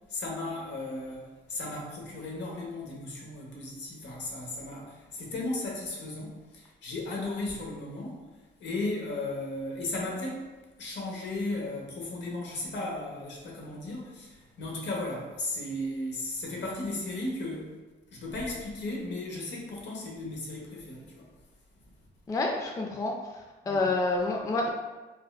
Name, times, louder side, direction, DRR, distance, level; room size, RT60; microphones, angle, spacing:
voice 1, 0.1-8.2 8.6-10.5 10.8-17.7 18.1-21.3 23.6-23.8, left 2 dB, 65° left, -2 dB, 0.9 m, -35 dB
voice 2, 22.3-23.1 23.7-24.7, left 2 dB, 15° left, 1 dB, 0.3 m, -28 dB
4.2 x 2.4 x 2.3 m, 1.2 s
cardioid pair, 90°, 20 cm